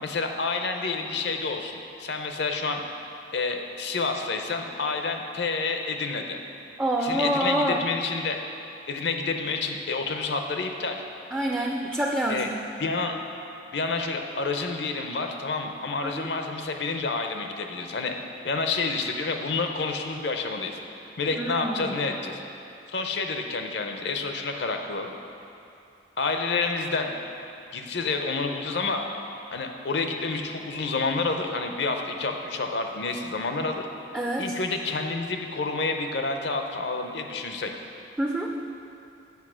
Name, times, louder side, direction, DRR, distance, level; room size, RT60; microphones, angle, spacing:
voice 1, 0.0-2.8 3.3-6.4 7.0-8.4 8.9-11.0 12.3-12.5 12.8-13.2 13.7-18.1 18.4-20.8 21.2-22.4 22.9-25.1 26.2-27.1 27.7-29.1 29.5-33.9 34.4-37.7, left 3 dB, 70° left, 4 dB, 0.6 m, -29 dB
voice 2, 6.8-7.9 11.3-12.6 16.0-16.3 21.4-22.0 34.1-34.5 38.2-38.7, right 1 dB, 10° right, -1 dB, 0.4 m, -27 dB
8.3 x 5.1 x 6.2 m, 2.7 s
head